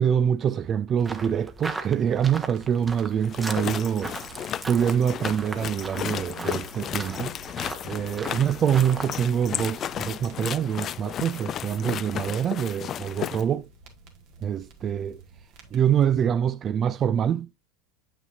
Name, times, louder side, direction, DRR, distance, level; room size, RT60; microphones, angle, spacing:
voice 1, 0.0-4.2 4.7-7.3 7.8-13.7 14.4-15.2 15.7-17.6, right 8 dB, 35° right, 0.4 m, -25 dB
sound 1, 1.0-9.2, right 3 dB, 15° right, 1.0 m, -39 dB
sound 2, 1.9-16.1, right 2 dB, 55° right, 1.8 m, -50 dB
sound 3, 3.2-13.4, left 10 dB, 40° left, 0.3 m, -34 dB
7.7 x 6.0 x 2.6 m
hypercardioid pair, 85°, 0 cm